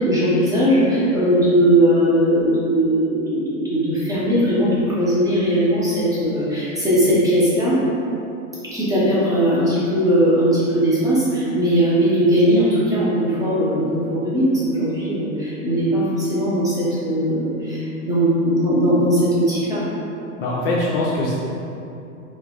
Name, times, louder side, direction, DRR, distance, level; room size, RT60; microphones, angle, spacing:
voice 1, 0.0-7.7 8.7-19.8, equal, 10° right, -10 dB, 0.7 m, -19 dB
voice 2, 20.4-21.4, left 2 dB, 40° left, -4 dB, 0.5 m, -22 dB
3.5 x 2.7 x 2.9 m, 2.7 s
hypercardioid pair, 125°, 44 cm